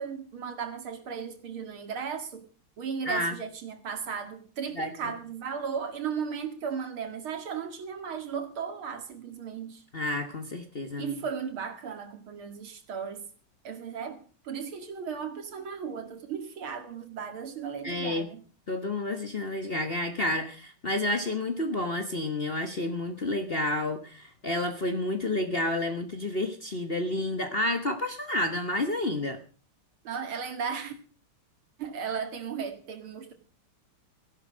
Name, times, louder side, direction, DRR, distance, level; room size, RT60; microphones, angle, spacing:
voice 1, 0.0-2.5 2.8-9.8 11.0-13.3 13.6-18.4 30.0-30.9 31.8-33.3, right 6 dB, 70° right, 2.8 m, -36 dB
voice 2, 9.9-11.2 17.8-18.3 18.7-29.4, left 1 dB, 35° left, 1.2 m, -30 dB
16.0 x 11.0 x 6.2 m
omnidirectional pair, 2.4 m